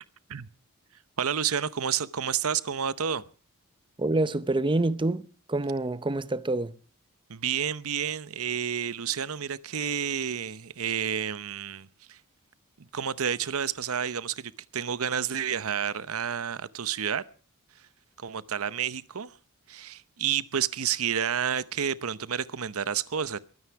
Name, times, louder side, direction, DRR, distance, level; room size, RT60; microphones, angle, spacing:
voice 1, 1.2-3.2 7.3-12.2 12.8-17.2 18.2-19.3 19.7-23.4, right 8 dB, 70° right, 0.8 m, -30 dB
voice 2, 4.0-6.8, right 2 dB, 20° right, 0.7 m, -27 dB
22.5 x 9.7 x 5.8 m
head